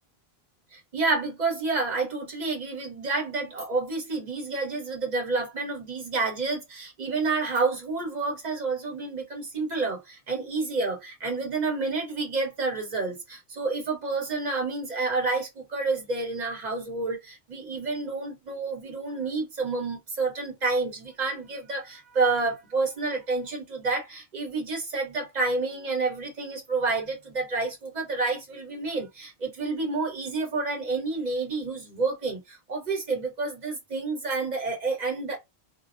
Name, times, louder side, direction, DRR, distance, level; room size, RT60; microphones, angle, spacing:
voice 1, 0.7-35.4, right 3 dB, 45° right, 1.2 m, -29 dB
2.5 x 2.1 x 2.4 m
omnidirectional pair, 1.0 m